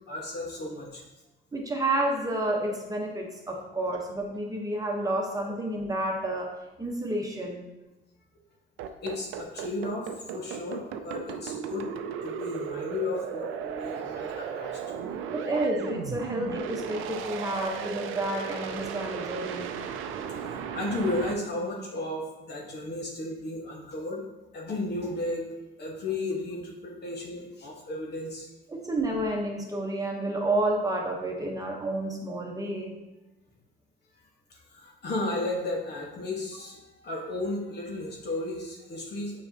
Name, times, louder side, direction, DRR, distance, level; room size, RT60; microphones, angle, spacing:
voice 1, 0.1-1.0 9.0-11.9 12.2-15.5 20.3-24.2 24.5-28.5 34.5-39.4, left 2 dB, 55° left, -1 dB, 1.5 m, -34 dB
voice 2, 1.5-7.7 15.3-19.8 28.7-33.0, right 1 dB, 15° right, 0 dB, 1.1 m, -30 dB
sound 1, 8.8-21.3, right 8 dB, 90° right, 0.5 m, -35 dB
6.8 x 4.9 x 2.9 m, 1.0 s
cardioid pair, 90°, 20 cm